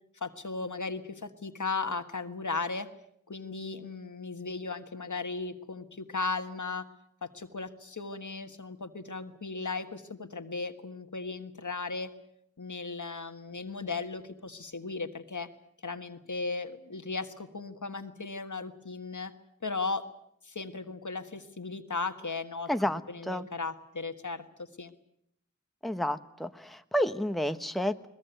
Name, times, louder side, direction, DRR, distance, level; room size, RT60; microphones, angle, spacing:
voice 1, 0.2-2.9 3.3-6.9 7.2-12.1 12.6-15.5 15.8-19.3 19.6-20.0 20.4-22.7 23.1-24.9, left 4 dB, 80° left, 8 dB, 1.6 m, -36 dB
voice 2, 22.7-23.5 25.8-28.1, equal, ahead, 9 dB, 1.1 m, -30 dB
21.5 x 20.5 x 9.3 m, 0.74 s
wide cardioid pair, 45°, 30 cm